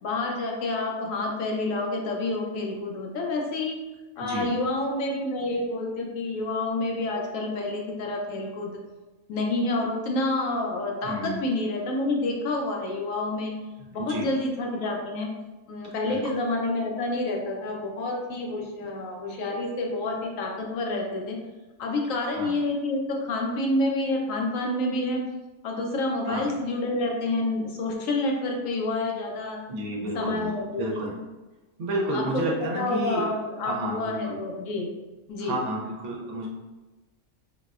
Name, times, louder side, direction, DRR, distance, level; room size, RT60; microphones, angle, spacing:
voice 1, 0.0-3.8 4.2-8.7 9.3-13.6 13.9-15.3 15.7-21.4 21.8-25.2 25.6-29.6 30.1-31.2 32.1-34.9 35.3-35.6, left 2 dB, 75° left, 1 dB, 0.9 m, -28 dB
voice 2, 11.0-11.4 13.9-14.3 16.1-16.2 22.3-22.5 26.3-26.5 29.7-30.5 30.8-31.1 31.8-33.2 33.6-34.4 35.4-36.5, right 1 dB, 65° right, -2 dB, 0.9 m, -31 dB
3.9 x 2.1 x 2.4 m, 1.1 s
omnidirectional pair, 1.5 m